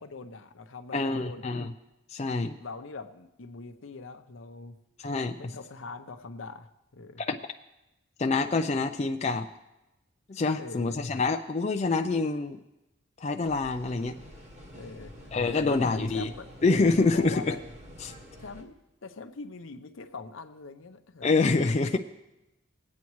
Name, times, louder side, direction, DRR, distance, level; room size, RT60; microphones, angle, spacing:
voice 1, 0.0-1.7 2.6-4.8 5.4-7.2 10.6-11.0 14.7-15.1 15.5-16.5 17.0-17.6 18.4-18.8 19.0-21.3, left 4 dB, 80° left, 8 dB, 0.7 m, -42 dB
voice 2, 0.9-1.7 2.1-2.6 5.0-5.5 7.2-7.4 8.2-9.5 10.3-12.6 13.2-14.2 15.3-16.3 16.6-17.6 18.0-18.1 21.2-22.0, left 3 dB, 35° left, 5 dB, 0.4 m, -26 dB
sound 1, 13.4-18.6, equal, 35° right, 1.6 m, -48 dB
20.5 x 8.4 x 3.1 m, 0.96 s
head